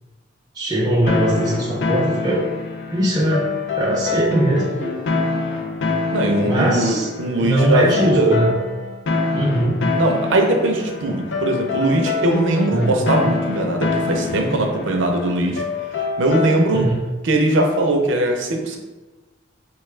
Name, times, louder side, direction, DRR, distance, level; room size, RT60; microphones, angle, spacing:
voice 1, 0.5-2.5 2.9-3.5 3.8-4.9 6.4-7.1 7.4-8.5 9.3-9.8 12.7-13.0 16.7-17.0, right 1 dB, 20° right, -5 dB, 0.5 m, -20 dB
sound 1, 1.1-17.0, left 3 dB, 65° left, 0.5 m, -25 dB
voice 2, 6.1-8.4 9.9-15.6 16.2-16.9 17.2-18.8, right 1 dB, 75° right, 3 dB, 0.6 m, -20 dB
4.4 x 2.3 x 3.2 m, 1.2 s
head